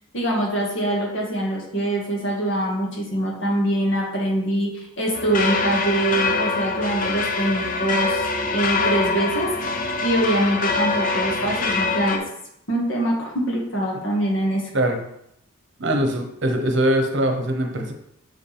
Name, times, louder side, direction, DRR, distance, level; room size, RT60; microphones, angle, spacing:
voice 1, 0.1-9.5 10.0-12.2 12.7-14.6, right 1 dB, 65° left, -1 dB, 1.7 m, -24 dB
sound 1, 5.1-12.2, left 3 dB, 40° left, 0.6 m, -24 dB
voice 2, 15.8-17.9, right 1 dB, 60° right, 4 dB, 0.9 m, -22 dB
6.1 x 5.0 x 3.4 m, 0.77 s
head